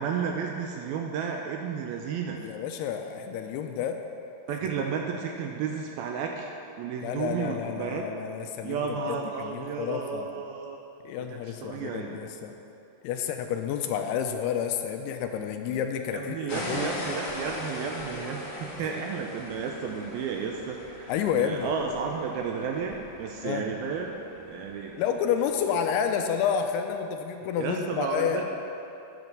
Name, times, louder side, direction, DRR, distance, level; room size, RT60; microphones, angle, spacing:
voice 1, 0.0-2.4 4.5-8.1 8.6-10.8 11.3-12.1 16.1-21.1 21.4-24.2 24.5-25.0 27.6-28.4, right 6 dB, 80° right, 2 dB, 2.3 m, -32 dB
voice 2, 2.4-4.0 7.0-10.3 11.0-12.5 13.0-16.9 18.8-18.9 21.1-21.7 23.4-23.7 25.0-28.4, left 8 dB, 80° left, 5 dB, 2.5 m, -30 dB
sound 1, 16.5-26.1, left 2 dB, 55° left, 1.9 m, -40 dB
10.5 x 7.6 x 6.6 m, 2.8 s
omnidirectional pair, 4.8 m